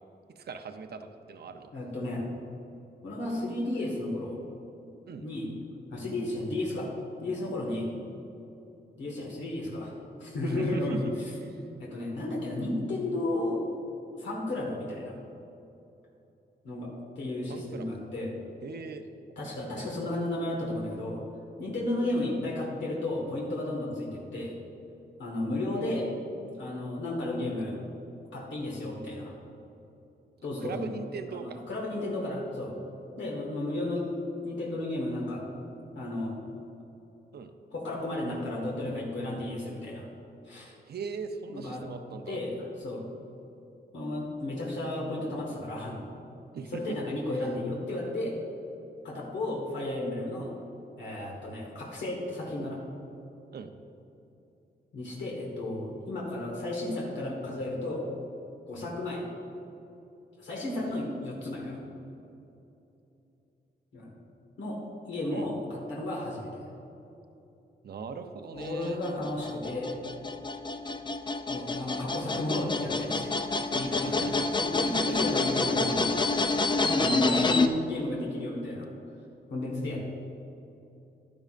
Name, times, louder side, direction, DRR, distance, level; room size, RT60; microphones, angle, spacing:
voice 1, 0.4-1.7 5.1-5.3 10.4-11.0 11.4-11.6 17.5-18.0 18.6-19.0 25.7-25.9 30.6-31.6 37.3-37.5 40.9-42.4 46.5-46.8 53.5-53.7 60.8-60.9 65.3-65.5 67.8-69.1 74.0-74.5 75.1-75.2, right 5 dB, 65° right, 7 dB, 0.7 m, -40 dB
voice 2, 1.7-2.3 3.0-4.4 5.2-5.5 5.9-6.9 7.2-7.9 9.0-9.9 10.2-11.1 11.8-13.6 14.2-15.2 16.6-16.9 17.2-18.3 19.3-21.2 21.6-24.5 25.2-26.1 26.6-27.7 28.3-29.3 30.4-30.8 31.3-32.7 33.2-34.1 34.4-35.4 35.9-36.3 37.7-40.1 40.4-40.7 41.5-41.8 42.3-43.0 43.9-46.0 46.7-48.4 49.0-50.5 51.0-52.8 54.9-58.0 58.7-59.2 60.4-61.8 63.9-64.1 64.6-64.8 65.0-66.5 68.5-69.9 71.5-73.3 73.7-74.1 74.6-76.1 76.7-78.9 79.5-80.0, left 1 dB, 90° left, -3 dB, 1.6 m, -33 dB
sound 1, 68.6-77.7, left 3 dB, 25° left, 0.5 m, -28 dB
11.5 x 10.5 x 2.5 m, 2.9 s
wide cardioid pair, 110°, 18 cm